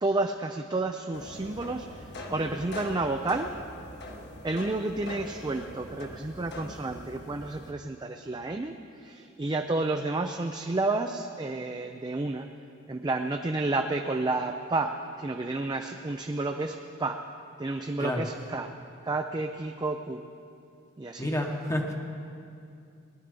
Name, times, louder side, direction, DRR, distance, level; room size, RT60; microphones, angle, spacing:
voice 1, 0.0-3.6 4.4-12.5 12.9-17.2 17.6-18.7 19.0-20.2 21.0-21.3, right 2 dB, 20° right, 4 dB, 0.4 m, -31 dB
sound 1, 1.1-7.7, left 1 dB, 60° left, 1.2 m, -42 dB
voice 2, 21.2-21.9, left 1 dB, 15° left, 1 dB, 1.0 m, -29 dB
18.0 x 11.0 x 5.3 m, 2.6 s
head